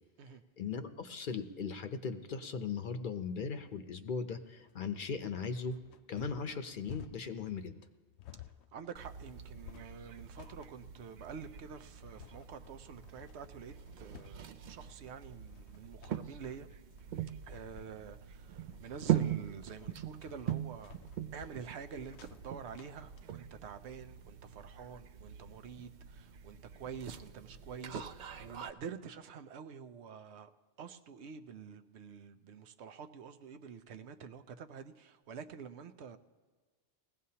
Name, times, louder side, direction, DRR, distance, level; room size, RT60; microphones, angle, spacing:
voice 1, 0.6-5.8 6.1-7.8, left 5 dB, 55° left, 0.8 m, -38 dB
sound 1, 4.6-23.2, left 11 dB, 85° left, 0.9 m, -55 dB
voice 2, 8.7-16.7 17.4-21.0 21.3-30.5 30.8-36.2, right 6 dB, 85° right, 0.9 m, -47 dB
sound 2, 8.9-28.7, right 10 dB, 55° right, 0.6 m, -42 dB
20.0 x 15.5 x 2.8 m
omnidirectional pair, 1.1 m